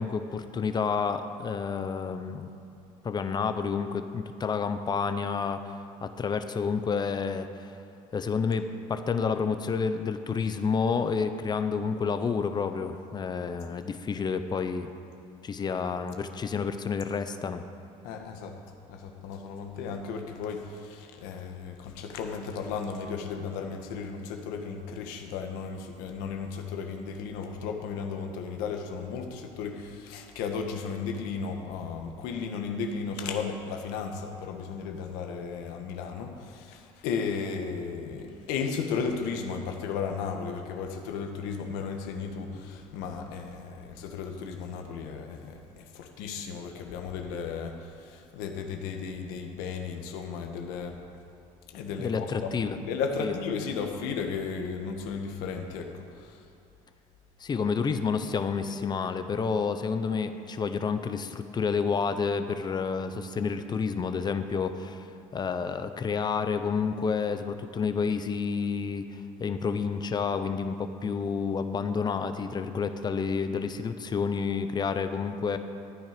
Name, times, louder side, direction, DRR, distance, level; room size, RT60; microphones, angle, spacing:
voice 1, 0.0-2.5 3.0-7.7 8.1-14.9 15.4-17.7 52.0-52.8 53.2-53.4 57.4-65.1 65.3-75.6, left 5 dB, 30° left, 9 dB, 0.8 m, -29 dB
voice 2, 18.0-18.5 18.9-45.6 45.9-50.9 51.7-55.9 56.2-56.4, left 5 dB, 85° left, 3 dB, 1.5 m, -34 dB
14.0 x 9.5 x 5.2 m, 2.8 s
cardioid pair, 110°, 15 cm